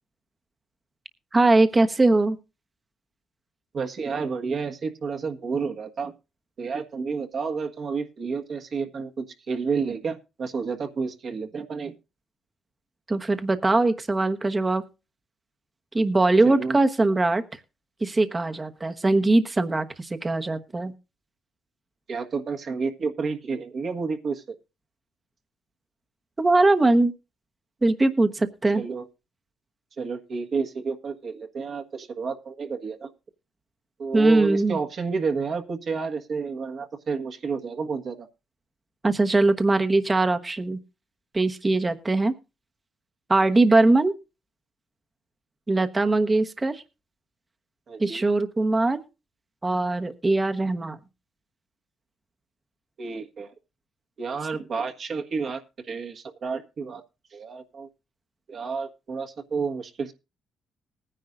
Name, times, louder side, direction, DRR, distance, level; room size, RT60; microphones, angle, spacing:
voice 1, 1.3-2.4 13.1-14.8 15.9-17.4 18.0-20.9 26.4-27.1 27.8-28.8 34.1-34.8 39.0-40.8 41.3-42.3 43.3-44.1 45.7-46.8 48.0-49.0 49.6-51.0, right 2 dB, 20° right, 8 dB, 1.1 m, -21 dB
voice 2, 3.7-6.1 6.6-11.9 16.4-16.8 22.1-24.6 28.7-29.1 30.0-33.1 34.0-38.3 47.9-48.2 53.0-53.5 54.2-57.0 57.3-57.9 58.5-60.1, right 5 dB, 55° right, 4 dB, 1.5 m, -30 dB
19.5 x 10.0 x 2.5 m, 0.27 s
cardioid pair, 90°, 0 cm